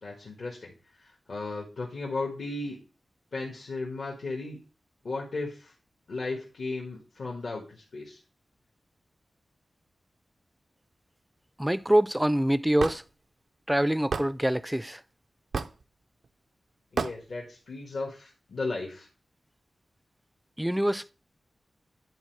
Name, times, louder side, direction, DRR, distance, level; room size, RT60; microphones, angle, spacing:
voice 1, 0.0-2.8 3.3-4.6 5.0-5.7 6.1-8.2 16.9-19.1, left 3 dB, 75° left, 1.6 m, -35 dB
voice 2, 11.6-13.0 13.7-15.0 20.6-21.1, right 1 dB, 5° right, 0.3 m, -25 dB
Hammer / Wood, 12.8-13.0 14.1-14.3 15.5-15.8 17.0-17.2, right 5 dB, 85° right, 0.5 m, -29 dB
10.0 x 4.3 x 4.6 m
wide cardioid pair, 80°, 0 cm